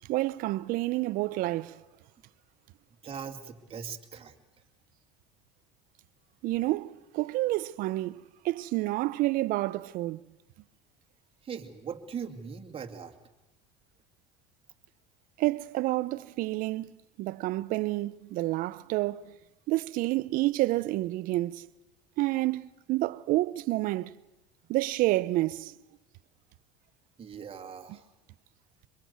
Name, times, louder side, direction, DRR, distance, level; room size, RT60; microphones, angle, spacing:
voice 1, 0.1-1.8 6.4-8.2 8.4-10.2 15.4-16.9 17.2-19.3 19.7-21.7 22.2-24.1 24.7-25.7, right 18 dB, 60° right, 0.8 m, -29 dB
voice 2, 3.0-4.3 11.4-13.1 27.2-28.1, right 7 dB, 35° right, 2.4 m, -40 dB
24.5 x 22.0 x 8.1 m
supercardioid pair, 90°, 16 cm